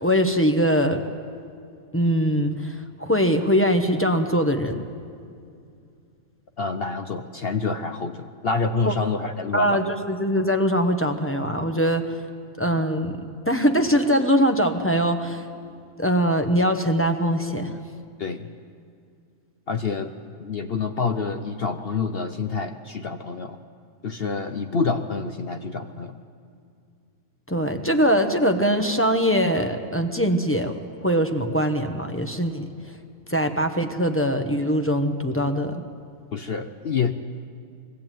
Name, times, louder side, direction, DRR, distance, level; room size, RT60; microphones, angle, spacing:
voice 1, 0.0-1.0 1.9-4.8 8.8-8.9 9.2-12.2 12.6-15.5 16.0-17.8 27.5-30.7 31.0-32.7 33.3-35.9, equal, 10° left, 6 dB, 0.7 m, -22 dB
voice 2, 6.6-9.8 18.2-18.5 19.7-20.1 20.4-23.6 24.0-26.2 36.3-37.1, left 4 dB, 55° left, 8 dB, 0.7 m, -27 dB
22.0 x 14.5 x 9.1 m, 2.3 s
omnidirectional pair, 1.7 m